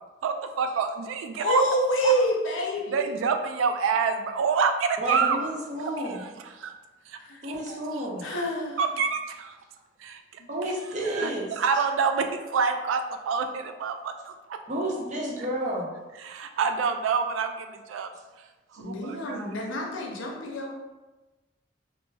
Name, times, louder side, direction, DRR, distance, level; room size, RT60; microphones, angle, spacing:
voice 1, 0.2-1.6 2.0-2.1 2.9-5.4 6.0-6.7 7.1-7.8 8.8-9.6 10.0-10.2 11.0-14.6 15.4-15.5 16.2-18.1 18.7-19.6, right 5 dB, 90° right, 6 dB, 0.3 m, -27 dB
voice 2, 1.4-3.1 7.3-7.4 8.2-8.8 10.4-10.5 18.8-20.7, right 1 dB, 90° left, 0 dB, 0.6 m, -27 dB
voice 3, 5.0-6.2 7.4-8.3 10.5-11.5 14.7-15.9, right 1 dB, 40° right, -3 dB, 0.7 m, -30 dB
3.2 x 2.0 x 3.2 m, 1.1 s
head